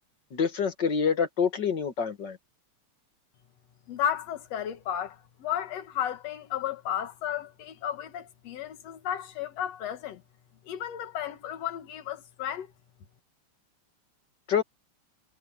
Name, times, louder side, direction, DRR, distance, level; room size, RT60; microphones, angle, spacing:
voice 1, 0.3-2.4 14.5-14.6, left 6 dB, 45° left, 1.8 m, -26 dB
voice 2, 3.9-10.2 10.7-12.7, left 10 dB, 65° left, 2.6 m, -33 dB
omnidirectional pair, 3.3 m